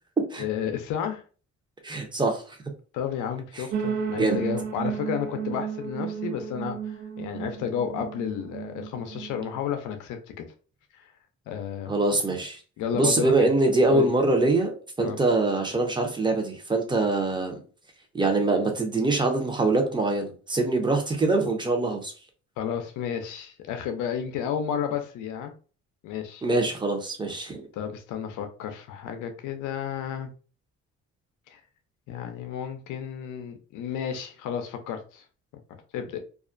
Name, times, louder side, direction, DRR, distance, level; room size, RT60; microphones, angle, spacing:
voice 1, 0.4-1.2 2.9-10.5 11.0-11.1 11.5-12.0 12.8-13.5 13.9-14.1 15.0-15.2 22.6-25.5 26.0-26.4 27.7-30.3 31.5-31.6 32.1-35.2 35.9-36.2, left 8 dB, 85° left, 6 dB, 0.5 m, -32 dB
voice 2, 1.8-2.6 3.6-3.7 4.1-4.4 11.9-12.6 12.9-14.7 15.0-17.6 18.1-22.1 26.4-27.7, right 2 dB, 15° right, 4 dB, 0.6 m, -24 dB
sound 1, 3.7-9.6, right 7 dB, 75° right, 0.5 m, -32 dB
2.3 x 2.1 x 2.4 m, 0.37 s
cardioid pair, 90°, 30 cm